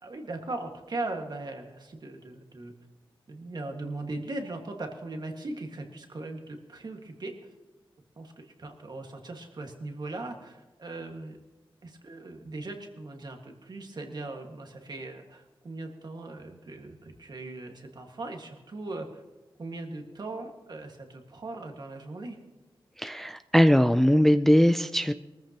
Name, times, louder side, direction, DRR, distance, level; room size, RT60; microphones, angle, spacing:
voice 1, 0.0-2.7 3.3-7.4 8.2-11.4 11.8-19.2 19.6-22.4, right 2 dB, 50° right, 3 dB, 1.8 m, -39 dB
voice 2, 23.0-25.1, equal, 5° left, 11 dB, 0.3 m, -20 dB
23.0 x 14.0 x 2.9 m, 1.2 s
wide cardioid pair, 125°, 9 cm